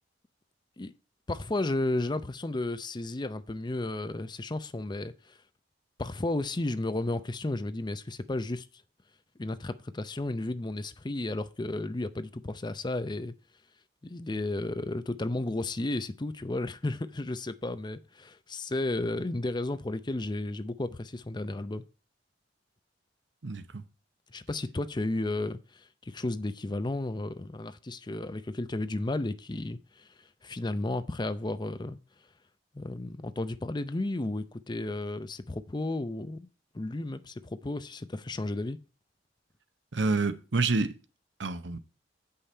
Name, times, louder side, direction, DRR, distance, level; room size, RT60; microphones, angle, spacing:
voice 1, 1.3-5.4 6.0-8.7 9.4-13.3 14.0-21.8 24.3-32.0 32.7-36.5 36.7-38.8, left 2 dB, 25° left, 0.6 m, -33 dB
voice 2, 23.4-23.8 39.9-41.0 41.4-41.8, right 3 dB, 80° right, 0.9 m, -28 dB
8.4 x 5.6 x 4.4 m
head